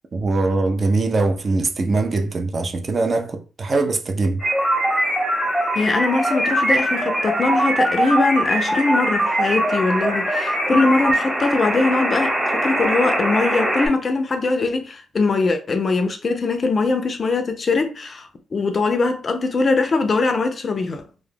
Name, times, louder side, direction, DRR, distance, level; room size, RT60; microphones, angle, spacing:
voice 1, 0.1-4.4, right 3 dB, 40° right, 0.4 m, -22 dB
sound 1, 4.4-13.9, right 1 dB, 10° right, 0.9 m, -21 dB
voice 2, 5.7-21.0, left 3 dB, 40° left, 0.4 m, -21 dB
2.2 x 2.1 x 3.2 m
cardioid pair, 100°, 0 cm